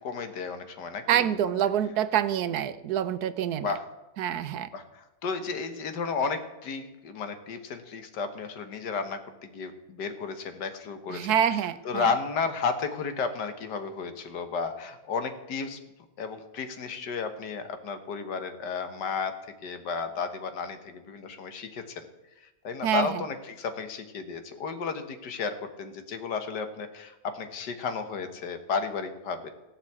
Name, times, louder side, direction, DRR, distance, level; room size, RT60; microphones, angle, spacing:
voice 1, 0.0-1.3 1.6-1.7 3.6-3.9 4.7-11.3 11.9-15.8 16.2-19.3 19.6-22.1 22.6-29.5, left 5 dB, 80° left, 8 dB, 1.8 m, -33 dB
voice 2, 1.1-3.8 4.2-4.7 11.1-12.1 22.8-23.2, right 9 dB, 70° right, 13 dB, 1.2 m, -26 dB
15.5 x 5.8 x 8.4 m, 0.99 s
omnidirectional pair, 1.8 m